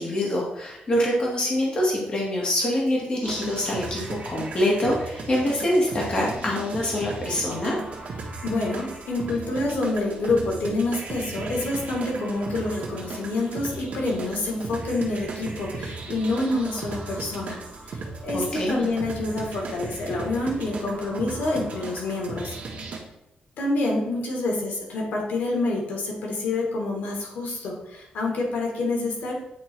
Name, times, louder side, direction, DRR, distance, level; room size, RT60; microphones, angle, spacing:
voice 1, 0.0-7.8 18.3-18.9, left 1 dB, 35° left, -3 dB, 1.8 m, -25 dB
sound 1, 3.2-23.0, right 3 dB, 50° right, 1.3 m, -36 dB
voice 2, 8.4-17.6 17.9-22.6 23.6-29.3, left 2 dB, 90° left, -1 dB, 1.8 m, -27 dB
8.9 x 3.1 x 4.5 m, 0.86 s
wide cardioid pair, 170°, 3 cm